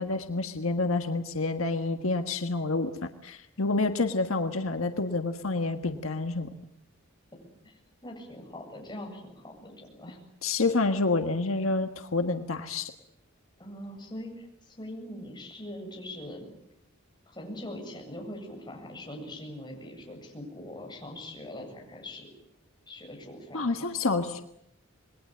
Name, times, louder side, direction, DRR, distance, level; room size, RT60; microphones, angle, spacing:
voice 1, 0.0-6.5 10.4-12.9 23.5-24.4, left 3 dB, 80° left, 7 dB, 1.6 m, -28 dB
voice 2, 8.0-10.2 13.6-16.5 17.3-22.3 22.9-23.9, left 1 dB, 20° left, 1 dB, 7.8 m, -42 dB
27.5 x 21.5 x 8.6 m, 0.77 s
head